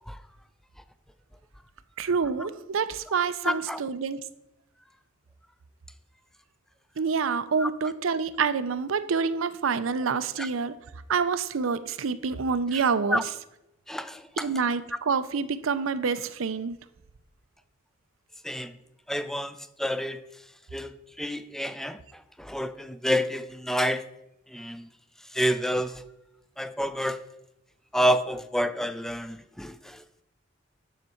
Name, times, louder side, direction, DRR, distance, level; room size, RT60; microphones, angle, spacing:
voice 1, 2.0-4.2 7.0-10.7 11.1-13.3 14.4-16.8, right 5 dB, 80° right, 13 dB, 0.5 m, -27 dB
voice 2, 3.4-3.8 7.6-7.7 10.4-10.5 13.1-13.2 13.9-14.5 18.4-18.7 19.1-20.2 20.7-22.0 22.4-24.0 24.5-24.9 25.3-26.0 26.6-27.2 27.9-30.0, equal, ahead, 12 dB, 0.4 m, -28 dB
9.8 x 6.6 x 4.4 m, 0.88 s
head